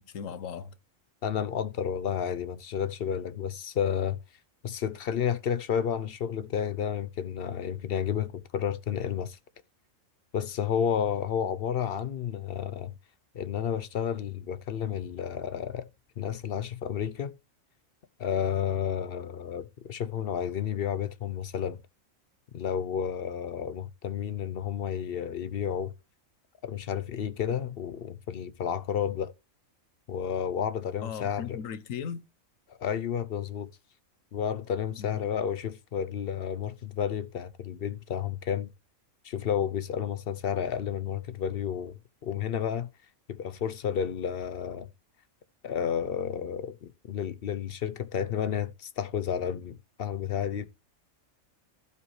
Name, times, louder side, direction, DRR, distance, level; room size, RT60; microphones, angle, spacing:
voice 1, 0.1-0.7 31.0-32.2 35.0-35.2, left 7 dB, 75° left, 1.2 m, -37 dB
voice 2, 1.2-4.2 4.6-9.4 10.3-12.9 13.3-15.9 16.2-17.4 18.2-21.8 22.5-25.9 26.6-29.3 30.1-31.6 32.7-33.7 34.3-38.7 39.2-42.9 43.3-44.9 45.6-50.7, left 8 dB, 55° left, 0.7 m, -31 dB
15.5 x 5.5 x 3.1 m
omnidirectional pair, 1.4 m